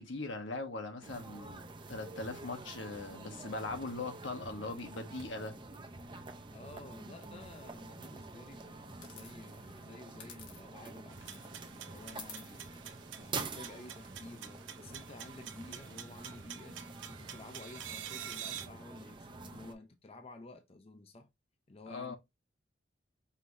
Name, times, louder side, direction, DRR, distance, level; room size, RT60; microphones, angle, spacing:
voice 1, 0.0-1.6 1.9-5.5 21.9-22.2, left 3 dB, 80° left, 1.1 m, -40 dB
sound 1, 1.0-19.7, right 3 dB, 25° right, 0.6 m, -47 dB
voice 2, 6.5-12.6 13.2-16.8 17.1-21.3 21.7-22.1, left 2 dB, 30° left, 0.6 m, -52 dB
sound 2, 9.0-10.9 11.2-14.0, left 6 dB, 65° left, 1.5 m, -54 dB
sound 3, 11.1-18.7, right 10 dB, 80° right, 0.7 m, -47 dB
5.5 x 3.1 x 2.6 m
head